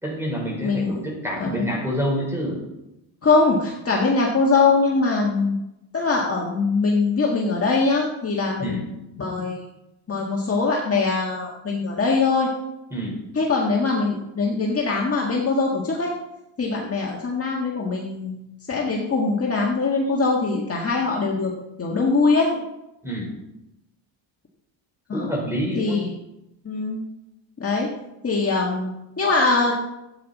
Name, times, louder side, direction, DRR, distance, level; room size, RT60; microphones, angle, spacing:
voice 1, 0.0-2.6 8.6-8.8 12.9-13.2 23.0-23.3 25.1-26.1, equal, 5° right, -1 dB, 4.2 m, -27 dB
voice 2, 0.6-1.0 1.4-1.7 3.2-5.6 5.9-8.8 9.2-9.6 10.1-12.5 13.3-16.1 16.6-18.4 18.7-21.5 21.8-22.5 25.1-25.3 25.7-26.1 26.6-27.0 27.6-27.9 28.2-29.7, left 3 dB, 30° left, -2 dB, 1.7 m, -22 dB
13.0 x 8.9 x 4.1 m, 0.92 s
cardioid pair, 120°, 49 cm